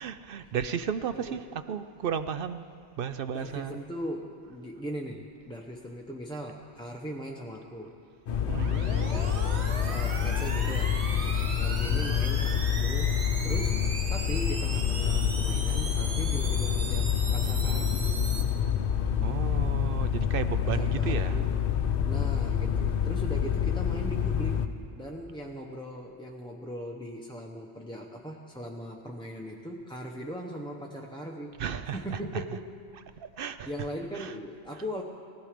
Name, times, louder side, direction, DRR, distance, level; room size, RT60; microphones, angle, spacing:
voice 1, 0.0-2.6 3.0-3.8 8.5-8.8 19.2-21.4 31.6-32.4 33.2-33.7 34.1-34.3, right 7 dB, 65° right, 11 dB, 0.7 m, -33 dB
voice 2, 3.3-7.9 9.1-9.5 9.8-11.0 11.5-18.2 20.6-21.5 22.0-31.5 31.9-32.7 33.7-35.0, equal, 5° left, -1 dB, 0.7 m, -39 dB
sound 1, 8.3-24.7, left 8 dB, 60° left, 0.8 m, -27 dB
sound 2, 8.4-18.4, right 3 dB, 85° right, 1.6 m, -38 dB
18.0 x 14.5 x 5.1 m, 2.3 s
omnidirectional pair, 1.1 m